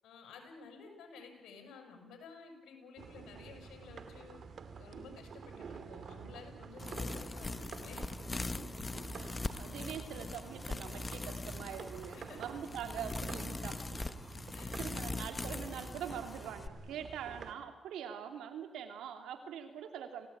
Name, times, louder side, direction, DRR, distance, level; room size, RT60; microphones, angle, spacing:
voice 1, 0.0-4.4 4.8-8.1 12.1-12.6 14.5-15.1, left 5 dB, 80° left, 4 dB, 7.2 m, -53 dB
sound 1, 3.0-17.5, right 6 dB, 60° right, 2.7 m, -49 dB
sound 2, 6.8-16.7, left 3 dB, 30° left, 1.1 m, -41 dB
voice 2, 9.1-13.8 14.3-14.4 14.8-20.3, right 8 dB, 85° right, 6 dB, 3.0 m, -44 dB
28.5 x 17.5 x 8.8 m, 1.1 s
cardioid pair, 65°, 0 cm